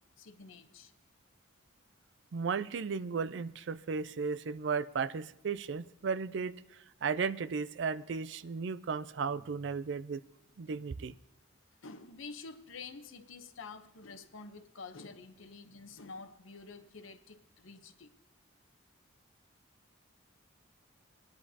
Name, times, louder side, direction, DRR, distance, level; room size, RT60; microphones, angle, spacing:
voice 1, 0.2-0.9 11.8-18.1, left 4 dB, 75° left, 8 dB, 0.9 m, -48 dB
voice 2, 2.3-6.6 7.0-10.2 10.6-11.1, right 5 dB, 60° right, 16 dB, 0.4 m, -35 dB
20.0 x 10.0 x 2.8 m, 0.85 s
head